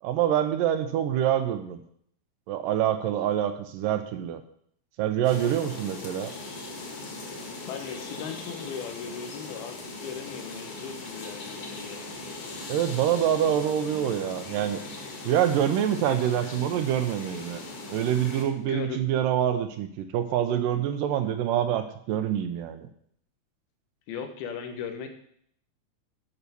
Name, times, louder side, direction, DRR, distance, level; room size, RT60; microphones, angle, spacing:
voice 1, 0.0-1.8 2.5-4.4 5.0-6.3 12.7-14.8 15.3-17.6 17.9-22.9, right 10 dB, 75° right, 8 dB, 2.1 m, -26 dB
sound 1, 5.2-18.4, left 3 dB, 45° left, 2.5 m, -39 dB
voice 2, 7.7-12.1 18.3-19.0 24.1-25.1, left 7 dB, 90° left, 6 dB, 3.1 m, -38 dB
11.0 x 5.9 x 6.9 m, 0.67 s
omnidirectional pair, 4.2 m